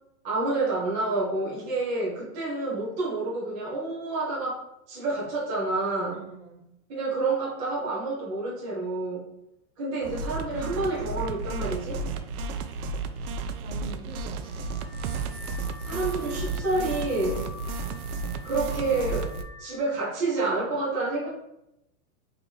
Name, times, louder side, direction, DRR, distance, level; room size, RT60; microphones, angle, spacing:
voice 1, 0.2-4.6 4.9-6.2 6.9-9.3 9.8-12.0 15.8-17.5 18.4-19.3 19.6-21.3, right 2 dB, 15° right, -6 dB, 0.3 m, -28 dB
voice 2, 6.1-6.7 13.1-14.8, right 2 dB, 90° right, 2 dB, 1.1 m, -45 dB
sound 1, 10.0-19.4, right 4 dB, 70° right, 0.6 m, -33 dB
Car / Alarm, 14.4-19.8, left 5 dB, 40° left, 1.1 m, -46 dB
3.1 x 2.7 x 3.8 m, 0.83 s
supercardioid pair, 155°, 45 cm